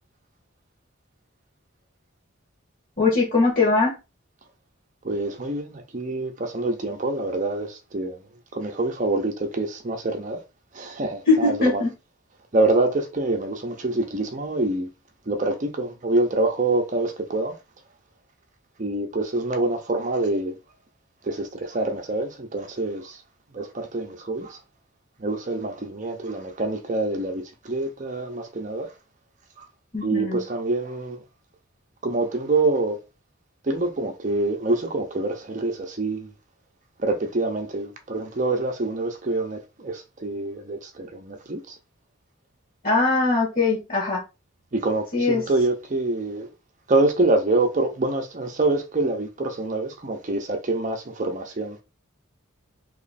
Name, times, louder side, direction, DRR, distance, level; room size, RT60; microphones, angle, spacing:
voice 1, 3.0-3.9 11.3-11.9 29.9-30.4 42.8-44.2 45.1-45.4, left 3 dB, 45° left, 1.4 m, -21 dB
voice 2, 5.0-8.2 8.5-10.4 10.7-11.8 12.5-14.9 15.3-17.6 18.8-20.6 21.2-23.2 23.5-24.6 25.2-28.9 29.6-29.7 30.0-31.2 32.0-33.0 33.6-36.3 37.0-41.8 44.7-46.5 46.9-51.8, right 2 dB, 35° right, 0.6 m, -26 dB
3.1 x 3.0 x 4.1 m
head